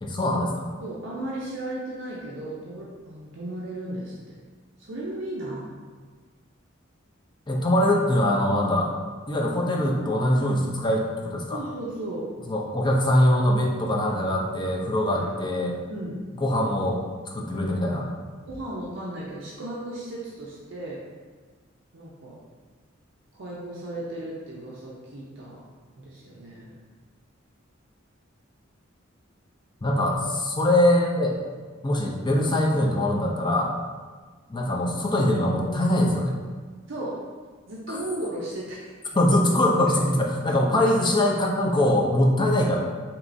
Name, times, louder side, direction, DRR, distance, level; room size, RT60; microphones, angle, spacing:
voice 1, 0.0-0.7 7.5-8.9 9.3-11.6 12.5-15.8 16.4-17.0 17.3-18.1 29.8-31.4 31.8-33.7 34.5-36.4 37.9-38.0 39.1-42.8, left 1 dB, 25° left, -1 dB, 0.5 m, -22 dB
voice 2, 0.8-4.4 4.8-5.7 11.5-12.2 15.1-15.3 15.9-16.2 18.5-21.0 21.9-22.4 23.3-25.6 26.0-26.7 36.9-37.2 37.7-39.0 40.8-40.9, right 1 dB, 65° right, -5 dB, 0.6 m, -35 dB
4.5 x 3.0 x 2.6 m, 1.4 s
head